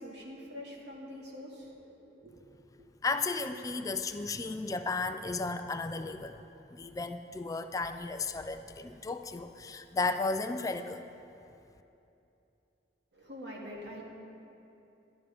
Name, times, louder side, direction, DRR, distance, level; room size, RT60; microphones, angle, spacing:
voice 1, 0.0-2.4 13.1-14.0, equal, 70° right, -2 dB, 2.0 m, -45 dB
voice 2, 3.0-6.4 6.7-11.1, left 3 dB, 20° left, 8 dB, 0.3 m, -34 dB
11.5 x 11.0 x 5.1 m, 2.8 s
head